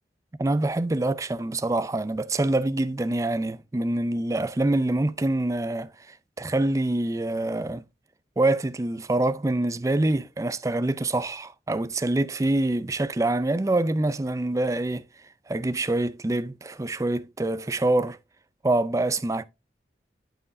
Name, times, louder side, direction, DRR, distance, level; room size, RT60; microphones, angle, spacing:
voice 1, 0.4-7.8 8.4-15.1 15.5-18.2 18.6-19.4, right 2 dB, 15° right, 0.4 m, -25 dB
11.5 x 4.5 x 2.6 m
head